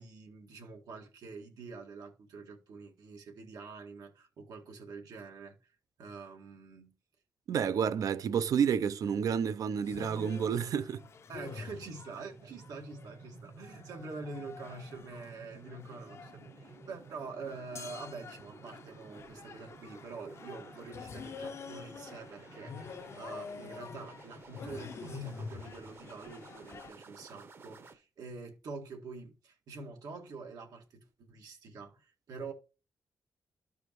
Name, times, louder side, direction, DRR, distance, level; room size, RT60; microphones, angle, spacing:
voice 1, 0.0-5.7 6.0-6.9 11.3-32.5, right 4 dB, 90° right, 1.9 m, -46 dB
voice 2, 7.5-11.0, right 7 dB, 70° right, 0.5 m, -30 dB
sound 1, 9.8-26.9, left 5 dB, 45° left, 0.6 m, -47 dB
sound 2, 11.5-27.9, right 4 dB, 40° right, 0.8 m, -54 dB
13.5 x 4.9 x 3.0 m
wide cardioid pair, 145°, 6 cm